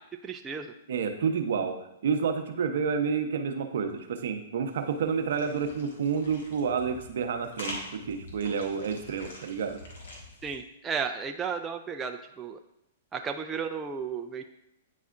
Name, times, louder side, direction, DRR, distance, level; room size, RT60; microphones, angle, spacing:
voice 1, 0.2-0.7 10.4-12.6 13.1-14.4, right 6 dB, 15° right, 4 dB, 0.4 m, -34 dB
voice 2, 0.9-1.8 2.0-9.8, right 6 dB, 70° right, 6 dB, 0.8 m, -29 dB
sound 1, 4.7-10.6, left 1 dB, 80° left, 1.6 m, -45 dB
9.3 x 4.1 x 2.5 m, 0.80 s
hypercardioid pair, 125°, 0 cm